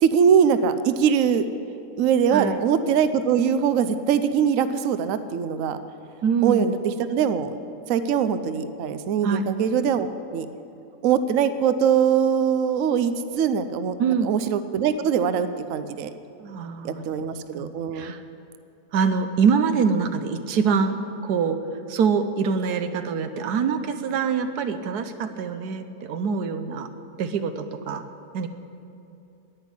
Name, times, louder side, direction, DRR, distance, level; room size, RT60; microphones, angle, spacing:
voice 1, 0.0-1.5 2.0-5.8 6.4-6.8 7.1-7.5 7.9-10.1 10.3-10.5 11.0-14.0 14.2-16.1 16.8-18.1, right 7 dB, 65° right, 11 dB, 1.0 m, -22 dB
voice 2, 6.2-6.7 9.2-9.5 14.0-14.3 16.4-18.2 18.9-21.0 21.2-21.6 21.9-26.9 27.2-28.0 28.3-28.5, right 6 dB, 80° right, 9 dB, 1.4 m, -24 dB
10.5 x 10.0 x 9.8 m, 2.7 s
omnidirectional pair, 1.7 m